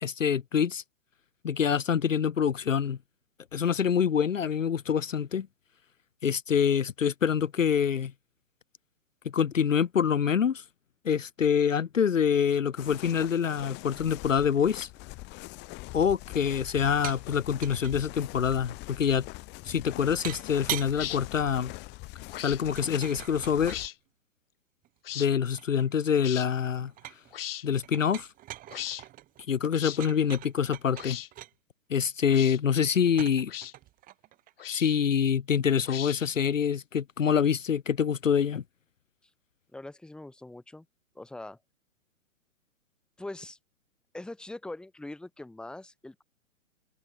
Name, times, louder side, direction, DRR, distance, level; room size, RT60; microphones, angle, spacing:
voice 1, 0.0-0.8 1.4-3.0 3.5-5.5 6.2-8.1 9.2-10.6 11.0-14.9 15.9-19.3 19.6-21.7 22.4-23.8 25.1-26.9 27.6-28.3 29.5-31.2 31.9-33.5 34.7-38.6, left 7 dB, 70° left, 0.8 m, -26 dB
sound 1, 12.8-23.9, left 23 dB, 25° left, 4.8 m, -43 dB
sound 2, 17.0-17.2 17.5-17.9 20.2-21.0 22.7-23.9 24.8-26.1 26.4-27.3 27.8-31.5 33.0-35.1, right 15 dB, 20° right, 3.6 m, -41 dB
sound 3, 20.9-21.2 22.3-22.6 23.6-23.9 25.0-25.3 26.2-26.5 27.3-27.7 28.7-29.0 29.7-30.0 30.9-31.3 32.3-32.6 33.5-33.7 34.6-35.0 35.9-36.4, left 12 dB, 45° left, 2.2 m, -38 dB
voice 2, 39.7-40.9 41.2-41.6 43.2-43.6 44.1-46.2, left 2 dB, ahead, 1.8 m, -42 dB
figure-of-eight pair, 120°, 40 cm